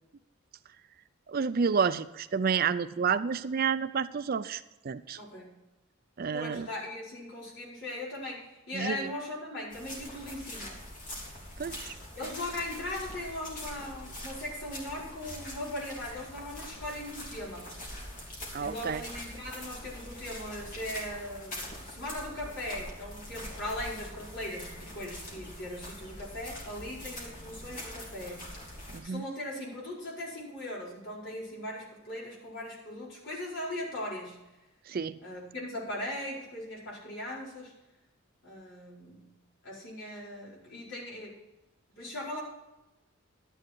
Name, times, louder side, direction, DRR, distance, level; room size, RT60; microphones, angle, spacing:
voice 1, 1.3-5.2 6.2-6.7 8.7-9.1 11.6-11.9 18.5-19.0 28.9-29.2 34.9-35.2, right 6 dB, 45° right, 14 dB, 0.4 m, -30 dB
voice 2, 5.1-5.6 6.3-10.8 12.1-17.8 18.6-28.5 29.0-34.4 35.2-37.7 38.4-39.3 39.6-41.4 42.0-42.4, left 1 dB, 55° left, -5 dB, 4.9 m, -39 dB
sound 1, 9.7-29.0, left 1 dB, 40° left, 3.1 m, -43 dB
12.0 x 10.0 x 4.5 m, 1.0 s
head